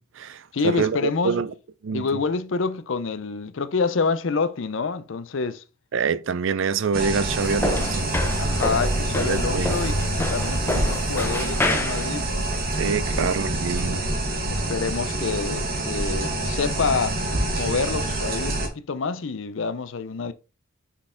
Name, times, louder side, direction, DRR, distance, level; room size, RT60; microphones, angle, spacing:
voice 1, 0.0-1.5 1.8-2.1 5.9-8.1 9.2-9.8 12.7-14.0, right 5 dB, 60° right, 0.4 m, -26 dB
voice 2, 0.5-1.4 1.9-5.6 8.4-12.2 13.1-13.3 14.5-17.2 17.6-20.3, left 4 dB, 60° left, 0.5 m, -27 dB
sound 1, 6.9-18.7, right 1 dB, 45° right, 1.3 m, -26 dB
sound 2, 7.4-13.4, left 2 dB, 10° left, 0.6 m, -29 dB
6.0 x 4.1 x 3.8 m
head